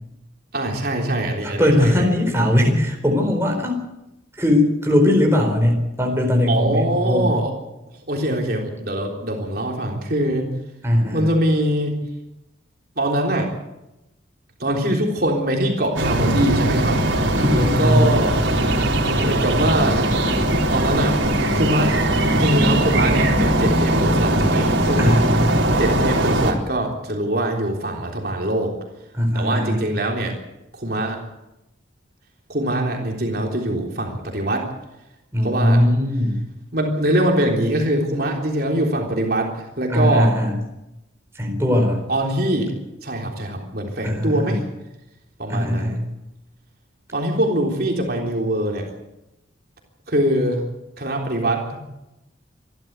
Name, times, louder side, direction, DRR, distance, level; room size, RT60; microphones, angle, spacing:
voice 1, 0.5-2.1 6.5-7.5 8.1-10.5 11.1-12.0 13.0-13.5 14.6-17.0 17.5-18.4 19.2-20.2 20.7-21.2 21.5-25.2 25.8-28.7 29.3-30.4 30.7-31.2 32.5-34.7 35.4-35.8 36.7-40.3 42.1-42.7 43.0-44.6 45.4-46.0 47.1-48.9 50.1-50.7 51.0-51.8, right 1 dB, 50° right, 1 dB, 3.7 m, -23 dB
voice 2, 1.4-3.9 4.4-7.4 10.8-11.3 17.4-18.1 25.0-25.6 29.1-29.8 35.3-36.4 39.9-40.6 41.3-42.0 44.0-44.5 45.5-46.1, left 1 dB, 15° right, 1 dB, 4.4 m, -19 dB
sound 1, 16.0-26.5, right 1 dB, 80° right, 3.8 m, -20 dB
26.5 x 12.5 x 8.2 m, 0.92 s
head